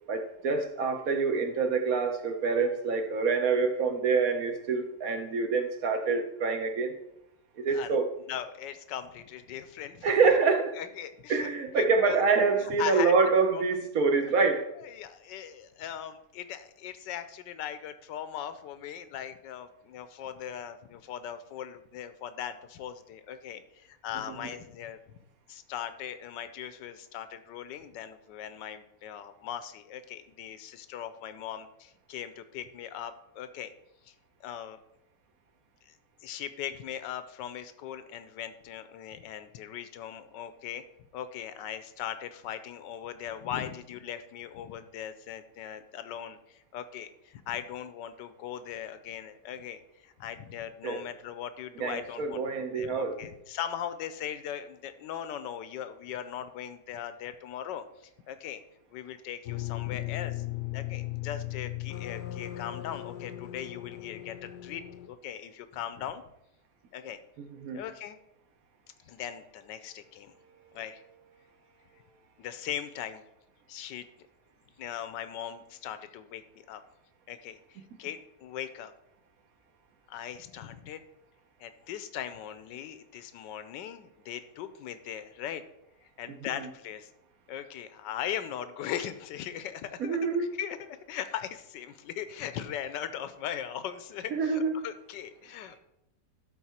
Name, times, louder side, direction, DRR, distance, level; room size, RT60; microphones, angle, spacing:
voice 1, 0.1-6.9 7.6-8.0 10.0-10.7 11.3-14.7 24.3-24.4 50.8-51.0 51.8-53.2 67.6-67.8 90.0-90.5 94.3-94.7, right 4 dB, 60° right, 6 dB, 1.1 m, -26 dB
voice 2, 8.3-10.2 10.7-11.5 11.7-12.2 12.6-13.1 13.5-13.6 14.7-25.2 25.5-33.7 34.0-34.1 34.4-34.8 35.9-36.0 36.2-40.8 41.1-58.6 58.9-60.4 60.7-66.2 66.9-67.2 67.7-68.2 69.0-70.3 70.7-71.0 72.4-73.2 73.7-74.1 74.8-76.8 77.3-78.9 80.1-81.0 81.6-85.6 86.0-87.1 87.5-95.8, left 10 dB, 90° left, 12 dB, 1.3 m, -39 dB
sound 1, 59.5-65.1, left 16 dB, 70° left, 1.0 m, -37 dB
12.0 x 4.0 x 4.3 m, 0.81 s
omnidirectional pair, 1.9 m